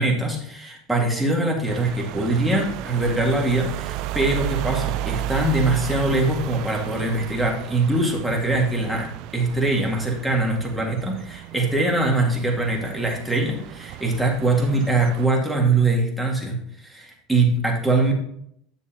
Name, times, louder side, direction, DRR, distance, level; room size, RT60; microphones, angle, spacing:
voice 1, 0.0-18.1, right 2 dB, 5° right, -1 dB, 2.1 m, -22 dB
sound 1, 1.6-15.3, right 14 dB, 60° right, 0.4 m, -33 dB
9.4 x 6.9 x 3.0 m, 0.71 s
supercardioid pair, 115°, 0 cm